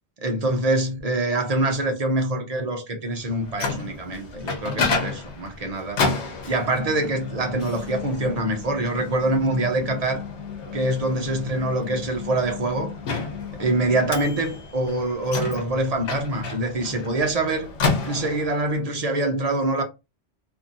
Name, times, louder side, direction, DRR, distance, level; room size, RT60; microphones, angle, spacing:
voice 1, 0.2-6.0 6.4-10.2 10.7-12.9 13.6-17.7 18.0-19.8, right 2 dB, 40° right, 0.6 m, -25 dB
Microwave oven, 3.2-18.7, left 4 dB, 90° left, 1.1 m, -31 dB
2.7 x 2.6 x 2.6 m
omnidirectional pair, 1.1 m